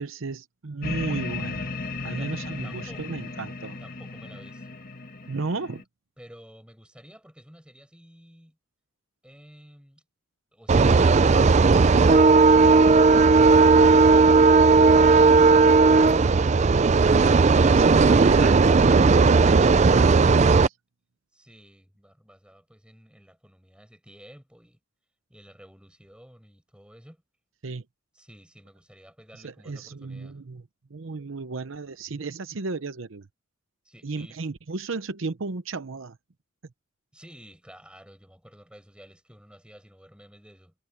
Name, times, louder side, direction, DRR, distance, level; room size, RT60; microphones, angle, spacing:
voice 1, 0.0-1.7 2.0-3.8 5.3-5.8 17.6-20.7 27.6-27.8 29.4-30.6 30.9-33.3 34.0-36.2, right 3 dB, 70° right, 0.8 m, -34 dB
sound 1, 0.8-5.8, left 3 dB, 45° left, 2.0 m, -35 dB
voice 2, 2.0-3.2 3.8-4.8 6.2-8.6 9.2-10.0 21.3-24.8 25.3-27.2 28.1-30.4 33.8-34.4 37.1-40.7, equal, 5° right, 5.7 m, -51 dB
sound 2, 10.7-20.7, right 4 dB, 35° right, 0.4 m, -16 dB
head